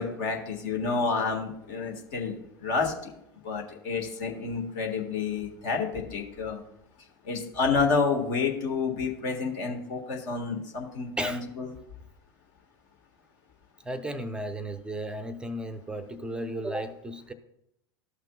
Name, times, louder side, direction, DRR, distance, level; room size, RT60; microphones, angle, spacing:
voice 1, 0.0-2.3 2.6-3.1 3.4-6.6 7.2-11.7, left 4 dB, 50° left, 1.6 m, -29 dB
voice 2, 13.8-17.3, right 1 dB, 5° right, 0.7 m, -34 dB
14.0 x 5.8 x 2.3 m
figure-of-eight pair, 85°, 13 cm